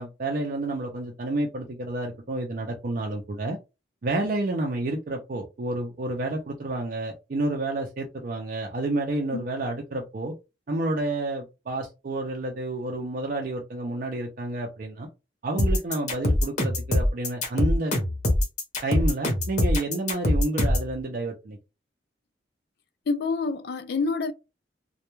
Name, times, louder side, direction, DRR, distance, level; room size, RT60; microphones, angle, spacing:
voice 1, 0.0-3.6 4.0-10.3 10.7-15.1 15.4-17.9 18.8-21.6, right 2 dB, 50° right, 0.4 m, -30 dB
sound 1, 15.6-20.9, left 1 dB, 40° left, 0.7 m, -23 dB
voice 2, 23.1-24.3, left 4 dB, 60° left, 0.3 m, -27 dB
2.2 x 2.2 x 2.9 m
head